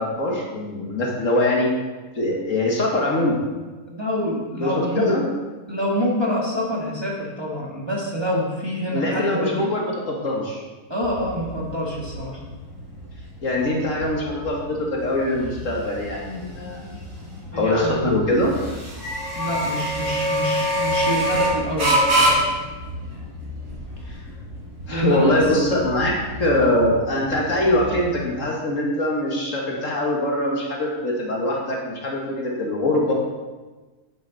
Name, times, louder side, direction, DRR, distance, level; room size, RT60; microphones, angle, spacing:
voice 1, 0.0-1.7 2.1-3.4 4.6-5.3 8.9-10.6 13.4-16.8 17.5-18.5 24.1-24.2 24.9-33.1, left 1 dB, 55° left, -1 dB, 1.9 m, -23 dB
voice 2, 3.9-5.1 5.7-9.7 10.9-12.4 17.5-18.1 19.3-22.4 24.9-25.4, equal, 15° right, -4 dB, 1.8 m, -26 dB
sound 1, 11.0-28.2, equal, 65° right, 4.3 m, -27 dB
9.9 x 9.1 x 4.1 m, 1.3 s
omnidirectional pair, 1.7 m